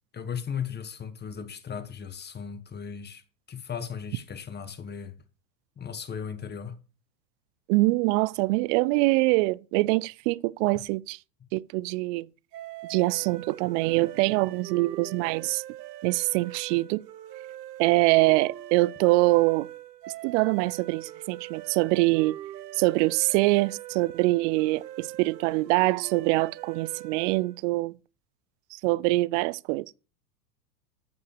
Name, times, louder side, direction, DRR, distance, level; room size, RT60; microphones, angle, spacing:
voice 1, 0.1-3.2 3.5-5.1 5.8-6.8 10.7-10.8, left 7 dB, 20° left, 1.6 m, -36 dB
voice 2, 7.7-11.2 11.5-12.3 12.9-15.6 16.0-17.0 17.8-19.7 20.2-22.4 22.8-27.9 28.7-30.0, right 22 dB, 50° right, 0.7 m, -24 dB
sound 1, 12.5-27.6, right 13 dB, 70° right, 2.0 m, -42 dB
14.5 x 5.5 x 6.8 m
hypercardioid pair, 105°, 50 cm